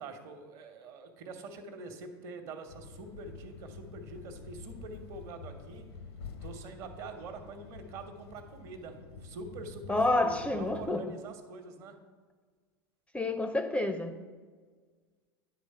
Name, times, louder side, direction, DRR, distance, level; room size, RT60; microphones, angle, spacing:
voice 1, 0.0-5.8 6.4-12.0, right 3 dB, 55° right, 1.1 m, -45 dB
sound 1, 2.7-10.9, left 5 dB, 80° left, 0.8 m, -48 dB
voice 2, 9.9-11.2 13.1-14.2, left 2 dB, 10° left, 0.4 m, -29 dB
10.0 x 3.4 x 5.5 m
hypercardioid pair, 90°, 13 cm